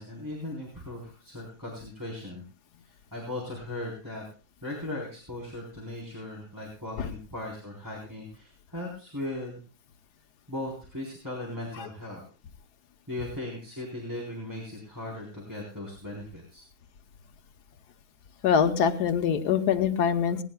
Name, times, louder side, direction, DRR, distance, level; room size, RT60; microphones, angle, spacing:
voice 1, 0.0-2.4 2.9-4.2 4.6-9.6 10.5-12.2 13.1-16.6, left 1 dB, 10° right, -4 dB, 3.8 m, -38 dB
voice 2, 18.4-20.4, left 7 dB, 90° left, 8 dB, 1.5 m, -24 dB
19.0 x 18.5 x 2.3 m, 0.36 s
omnidirectional pair, 1.7 m